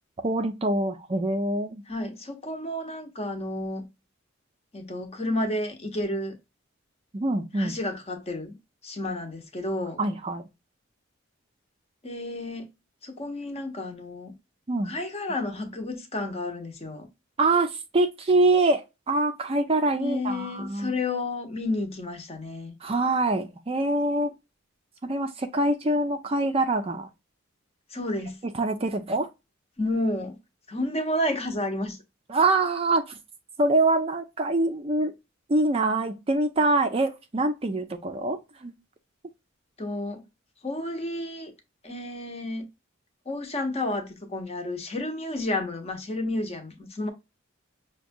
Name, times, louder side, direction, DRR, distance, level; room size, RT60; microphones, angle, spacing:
voice 1, 0.2-1.8 7.1-7.7 10.0-10.4 14.7-14.9 17.4-20.9 22.8-24.3 25.0-27.1 28.6-29.3 32.3-33.2 33.6-35.1 35.5-38.7, right 2 dB, 30° right, 0.4 m, -24 dB
voice 2, 1.9-3.9 4.7-6.4 7.5-8.6 8.8-10.1 12.0-12.7 13.0-14.4 14.8-17.1 20.0-22.8 27.9-28.4 29.8-30.4 30.7-32.0 39.8-40.2 40.6-41.5 41.8-42.7 43.3-47.1, left 1 dB, 30° left, 0.8 m, -31 dB
5.9 x 2.2 x 2.6 m
head